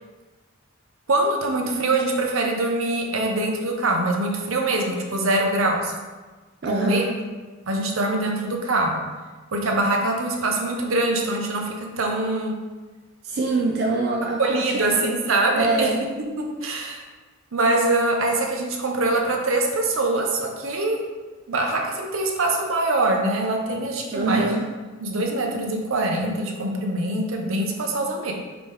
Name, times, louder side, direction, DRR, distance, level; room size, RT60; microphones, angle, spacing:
voice 1, 1.1-5.9 6.6-7.1 7.7-9.0 9.5-12.5 14.4-15.9 16.6-17.0 17.5-21.0 21.5-24.5 25.0-28.3, right 2 dB, 80° right, 1 dB, 0.7 m, -23 dB
voice 2, 6.6-7.1 13.2-15.2 15.5-16.0 24.1-24.7, right 3 dB, 50° right, -1 dB, 0.4 m, -25 dB
5.3 x 3.0 x 3.3 m, 1.3 s
head